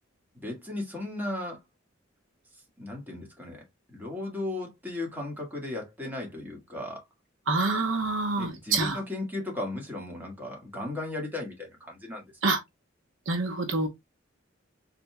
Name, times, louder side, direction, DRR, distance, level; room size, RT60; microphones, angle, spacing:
voice 1, 0.3-1.6 2.8-3.6 3.9-7.0 8.4-12.3, left 2 dB, 10° right, 1.8 m, -36 dB
voice 2, 7.5-9.0 12.4-12.6 13.3-13.9, right 3 dB, 75° right, 1.0 m, -26 dB
4.3 x 4.1 x 2.2 m
head